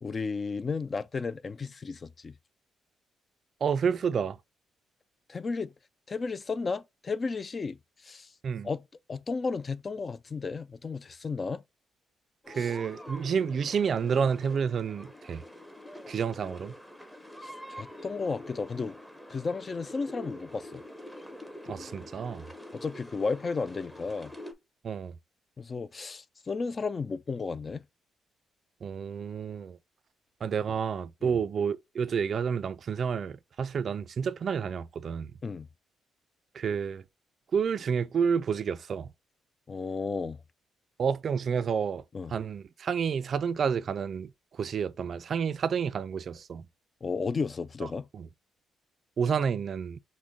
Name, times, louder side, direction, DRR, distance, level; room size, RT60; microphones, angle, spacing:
voice 1, 0.0-2.3 5.3-5.7 6.1-8.3 8.6-8.8 9.1-11.6 12.5-12.7 17.4-19.0 19.3-20.8 22.7-24.3 25.6-27.8 31.2-31.4 35.4-35.7 39.7-40.4 42.1-42.3 47.0-48.1, left 4 dB, 35° left, 0.3 m, -33 dB
voice 2, 3.6-4.4 8.4-8.7 12.5-15.4 16.1-16.7 21.7-22.4 24.8-25.2 28.8-29.8 30.4-35.3 36.5-37.0 37.5-39.1 41.0-42.0 42.3-46.7 48.1-48.3 49.2-50.0, right 6 dB, 50° right, 0.3 m, -30 dB
sound 1, 12.4-24.5, left 1 dB, 5° left, 0.8 m, -45 dB
6.0 x 2.1 x 3.6 m
cardioid pair, 90°, 0 cm